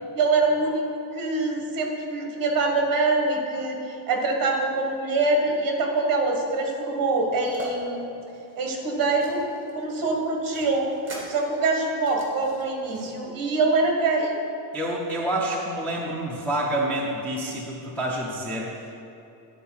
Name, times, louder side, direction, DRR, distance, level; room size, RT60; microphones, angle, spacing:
voice 1, 0.1-0.8 1.1-8.1 8.6-9.4 9.7-10.9 11.3-14.4, right 3 dB, 45° right, 2 dB, 1.3 m, -24 dB
sound 1, 7.4-7.7 8.2-9.7 10.1-13.1, right 1 dB, 25° right, 1.6 m, -41 dB
voice 2, 14.7-19.0, right 1 dB, 5° left, -4 dB, 0.4 m, -28 dB
10.5 x 4.6 x 5.7 m, 2.9 s
cardioid pair, 175°, 48 cm